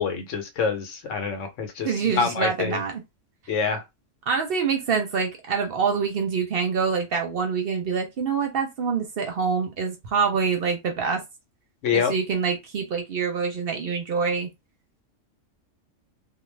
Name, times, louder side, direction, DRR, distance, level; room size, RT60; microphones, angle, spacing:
voice 1, 0.0-1.9 2.1-2.8 3.5-3.8 11.8-12.1, left 6 dB, 75° left, 1.0 m, -26 dB
voice 2, 1.8-3.0 4.3-11.2 11.9-14.5, right 5 dB, 60° right, 0.7 m, -25 dB
2.4 x 2.2 x 3.2 m
omnidirectional pair, 1.3 m